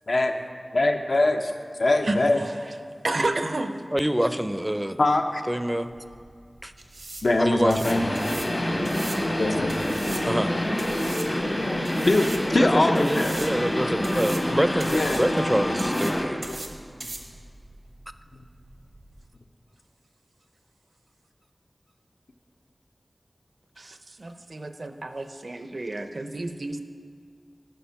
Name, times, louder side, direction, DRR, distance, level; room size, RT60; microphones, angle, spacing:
voice 1, 0.7-2.4 5.0-5.4 7.2-8.0 9.4-9.8 12.1-13.8 14.9-15.2 16.5-16.6 17.0-17.1 18.3-18.4, left 2 dB, 75° left, 5 dB, 0.6 m, -23 dB
voice 2, 2.0-2.6 3.0-3.9 23.8-26.8, right 2 dB, 70° right, 8 dB, 0.5 m, -31 dB
voice 3, 3.9-5.0 5.5-5.9 6.6-6.7 7.4-8.0 10.2-10.6 12.6-16.4, equal, 10° right, 11 dB, 0.4 m, -26 dB
sweeping tile floor with broom, 5.8-19.3, right 2 dB, 90° right, 0.8 m, -41 dB
sound 1, 7.8-16.3, left 1 dB, 60° left, 1.4 m, -26 dB
10.0 x 5.0 x 5.7 m, 2.1 s
wide cardioid pair, 45°, 0 cm